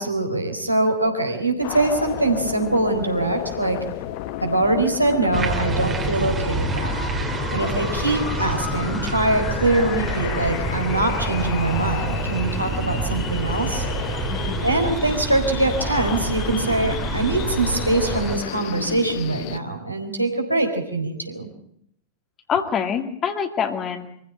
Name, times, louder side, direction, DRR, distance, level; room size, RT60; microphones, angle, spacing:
voice 1, 0.0-3.8 4.4-7.0 7.5-13.9 14.6-21.5, right 2 dB, 85° right, 4 dB, 4.2 m, -23 dB
sound 1, 1.6-19.6, left 15 dB, 45° left, 1.0 m, -32 dB
sound 2, 5.3-18.4, right 4 dB, 20° right, 2.4 m, -28 dB
voice 2, 14.3-14.7 22.5-24.1, left 7 dB, 30° left, 5 dB, 2.4 m, -25 dB
25.0 x 15.5 x 9.0 m, 0.70 s
figure-of-eight pair, 90°, 0 cm